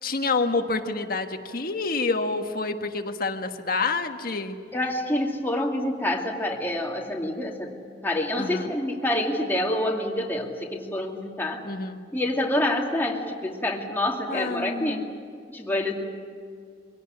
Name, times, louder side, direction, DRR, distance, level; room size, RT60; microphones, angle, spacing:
voice 1, 0.0-4.6 8.4-8.7 11.6-12.0 14.3-15.1, left 3 dB, 55° left, 6 dB, 1.5 m, -28 dB
voice 2, 4.7-7.7 8.0-11.6 12.1-15.0 15.5-15.9, left 1 dB, 10° left, 0 dB, 2.5 m, -27 dB
24.0 x 17.0 x 9.9 m, 2.2 s
head